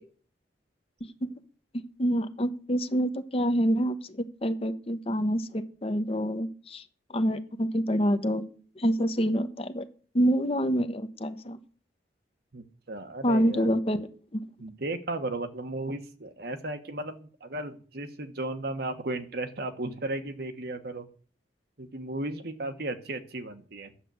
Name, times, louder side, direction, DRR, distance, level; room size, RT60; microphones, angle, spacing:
voice 1, 2.0-4.0 4.4-6.8 7.1-8.4 8.8-9.8 10.1-11.6 13.2-14.4, equal, 35° left, 9 dB, 0.9 m, -26 dB
voice 2, 12.5-13.7 14.6-21.1 21.8-23.9, right 2 dB, 60° right, 7 dB, 1.3 m, -35 dB
9.9 x 7.3 x 7.8 m, 0.43 s
head